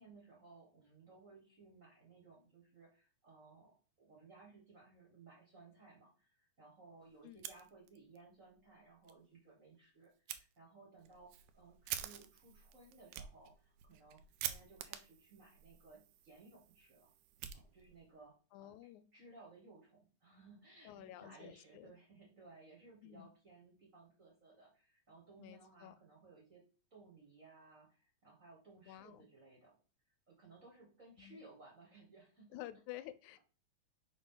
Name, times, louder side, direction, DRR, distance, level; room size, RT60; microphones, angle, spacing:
voice 1, 0.0-17.1 17.5-18.7 19.1-26.6 26.9-29.8 30.3-32.6, right 3 dB, 35° right, -3 dB, 1.4 m, -60 dB
Fire, 7.3-8.2 8.5-8.6 9.0-9.1 10.3-10.4 11.0-18.1, right 11 dB, 85° right, 2.0 m, -48 dB
voice 2, 18.5-19.1 20.8-21.9 23.0-23.3 25.4-25.9 28.9-29.3 31.2-31.4 32.5-33.4, left 14 dB, 90° left, 14 dB, 2.0 m, -51 dB
5.1 x 5.0 x 3.8 m, 0.36 s
omnidirectional pair, 3.3 m